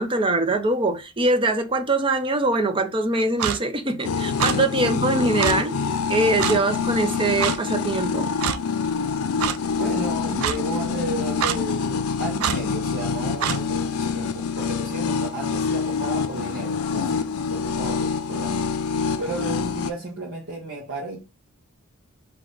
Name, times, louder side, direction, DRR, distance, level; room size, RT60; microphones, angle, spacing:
voice 1, 0.0-5.8 6.1-8.4, right 2 dB, 25° right, 0.6 m, -23 dB
Clock, 3.4-3.6 4.4-4.6 5.4-5.6 6.4-6.6 7.4-7.6 8.4-8.6 9.4-9.6 10.4-10.6 11.4-11.6 12.4-12.6 13.4-13.6, right 8 dB, 80° right, 0.4 m, -24 dB
sound 1, 4.0-19.9, left 5 dB, 80° left, 0.5 m, -26 dB
voice 2, 9.8-18.7 19.2-21.2, right 2 dB, 60° right, 1.2 m, -33 dB
3.6 x 2.9 x 3.9 m
head